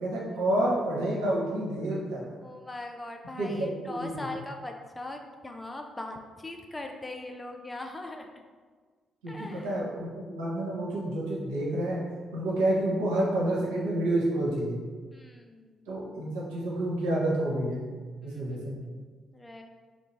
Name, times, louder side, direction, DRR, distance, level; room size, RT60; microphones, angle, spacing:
voice 1, 0.0-2.2 3.4-4.2 9.2-12.0 12.3-14.8 15.9-17.9 18.2-18.8, right 1 dB, 75° right, -5 dB, 0.7 m, -29 dB
voice 2, 2.4-8.3 9.3-9.7 15.1-15.8 18.2-18.9 19.3-19.6, left 2 dB, 20° left, 3 dB, 0.4 m, -40 dB
3.1 x 2.6 x 3.1 m, 1.5 s
figure-of-eight pair, 40°, 0 cm